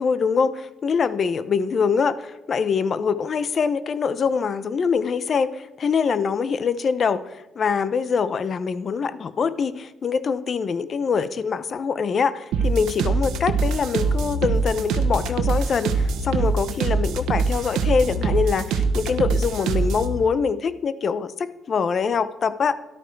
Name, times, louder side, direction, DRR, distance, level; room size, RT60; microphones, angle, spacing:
voice 1, 0.0-22.7, left 5 dB, 50° left, 15 dB, 0.8 m, -24 dB
sound 1, 12.5-20.1, right 4 dB, 85° right, 1.1 m, -23 dB
13.5 x 11.5 x 4.7 m, 0.97 s
cardioid pair, 90°, 0 cm